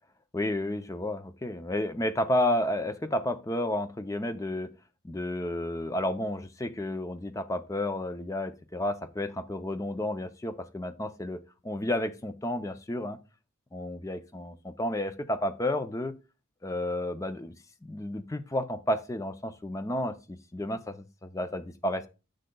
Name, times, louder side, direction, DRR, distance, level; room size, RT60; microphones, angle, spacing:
voice 1, 0.3-4.7 5.0-13.2 13.7-16.2 16.6-17.5 17.8-22.1, left 1 dB, 15° left, 10 dB, 0.4 m, -31 dB
10.0 x 6.6 x 2.2 m, 0.31 s
head